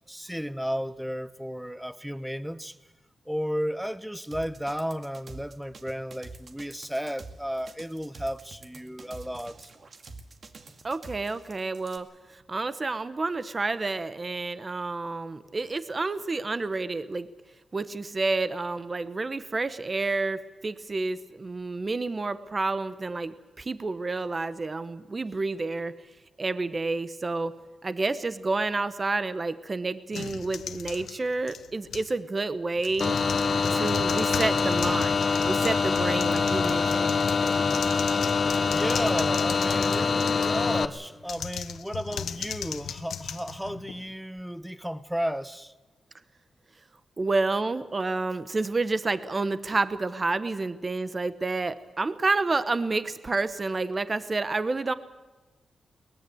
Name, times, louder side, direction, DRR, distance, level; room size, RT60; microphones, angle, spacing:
voice 1, 0.1-2.8 3.3-9.7 38.7-45.7, equal, ahead, 0.9 m, -33 dB
sound 1, 4.3-12.0, right 3 dB, 50° right, 2.2 m, -46 dB
voice 2, 10.8-17.3 17.7-25.9 26.4-27.5 27.8-33.2 33.7-37.1 47.2-54.9, right 3 dB, 30° right, 1.0 m, -29 dB
sound 2, 30.1-32.2 32.8-40.7 41.2-44.1, left 8 dB, 90° left, 1.0 m, -38 dB
sound 3, 33.0-40.8, left 5 dB, 50° left, 1.1 m, -25 dB
22.0 x 20.0 x 7.9 m
wide cardioid pair, 110°, 0 cm